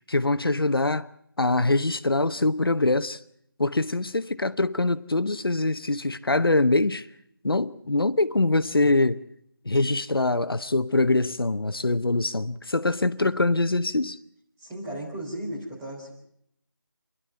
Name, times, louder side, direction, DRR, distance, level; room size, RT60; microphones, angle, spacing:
voice 1, 0.1-1.1 1.4-3.2 3.6-7.1 7.4-9.2 9.6-14.2, left 2 dB, 90° left, 1.0 m, -23 dB
voice 2, 14.6-16.1, right 1 dB, 10° right, 4.3 m, -35 dB
28.0 x 11.5 x 8.6 m
figure-of-eight pair, 170°, 12 cm